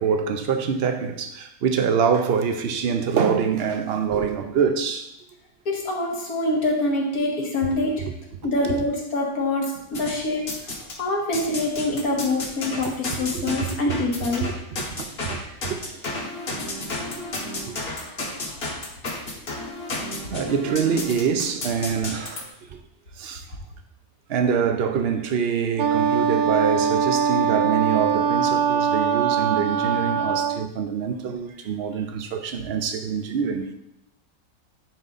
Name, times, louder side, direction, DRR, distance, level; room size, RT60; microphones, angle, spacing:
voice 1, 0.0-5.1 8.6-8.8 13.1-14.0 14.4-14.5 15.0-16.3 20.3-22.8 23.2-23.4 24.3-33.7, right 6 dB, 55° right, 0.8 m, -25 dB
voice 2, 5.7-7.9 8.4-10.4 11.0-14.4, left 2 dB, 75° left, 2.0 m, -25 dB
sound 1, 9.9-11.0 11.3-22.4, left 2 dB, 45° left, 1.3 m, -32 dB
Wind instrument woodwind instrument, 25.8-30.7, right 7 dB, 75° right, 1.1 m, -22 dB
9.8 x 3.9 x 4.0 m
omnidirectional pair, 1.6 m